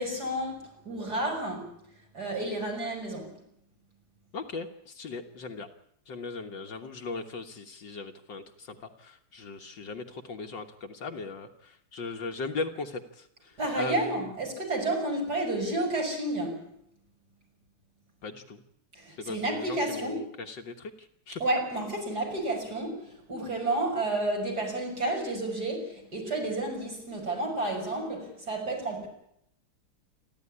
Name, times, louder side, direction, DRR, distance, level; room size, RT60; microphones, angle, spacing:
voice 1, 0.0-1.7 2.1-3.4 13.6-16.7 19.0-20.2 21.4-29.1, right 2 dB, 45° right, 1 dB, 6.9 m, -31 dB
voice 2, 4.3-5.7 6.1-14.1 18.2-18.6 19.2-21.4, left 4 dB, 60° left, 5 dB, 2.0 m, -38 dB
29.0 x 12.0 x 9.9 m, 0.73 s
omnidirectional pair, 2.3 m